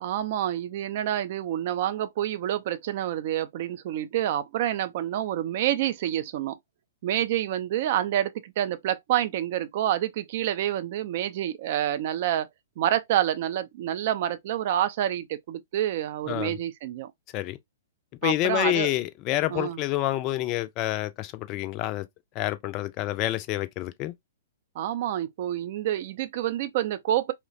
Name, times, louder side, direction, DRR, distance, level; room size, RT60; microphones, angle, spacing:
voice 1, 0.0-6.6 7.0-12.5 12.8-17.1 18.2-18.9 19.5-19.8 24.8-27.3, right 11 dB, 50° right, 0.4 m, -28 dB
voice 2, 18.2-22.1 22.4-24.1, left 15 dB, 35° left, 0.4 m, -28 dB
3.0 x 2.1 x 2.5 m
figure-of-eight pair, 110°, 0 cm